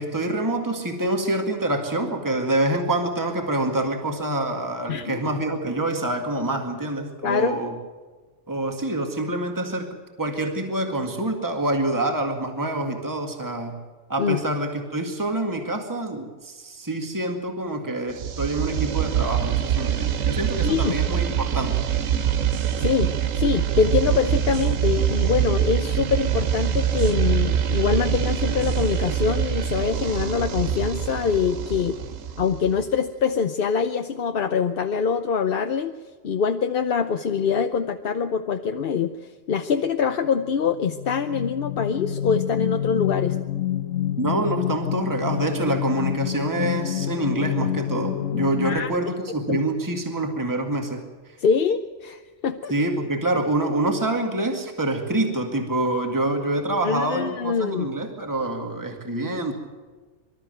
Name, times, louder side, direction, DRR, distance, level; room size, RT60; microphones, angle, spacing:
voice 1, 0.0-7.8 8.5-13.8 14.1-21.9 44.2-51.0 52.7-59.5, right 2 dB, 15° right, 3 dB, 2.0 m, -26 dB
voice 2, 4.9-5.2 7.2-7.6 14.2-14.4 20.6-20.9 22.8-32.0 32.4-35.9 36.2-39.1 39.5-43.4 48.6-48.9 49.5-49.6 51.4-52.7 56.8-57.9, left 6 dB, 50° left, 7 dB, 0.8 m, -24 dB
sound 1, 18.1-33.0, right 9 dB, 80° right, 1.3 m, -24 dB
sound 2, 40.5-48.8, left 11 dB, 75° left, 1.3 m, -27 dB
24.5 x 13.0 x 9.1 m, 1.4 s
omnidirectional pair, 1.3 m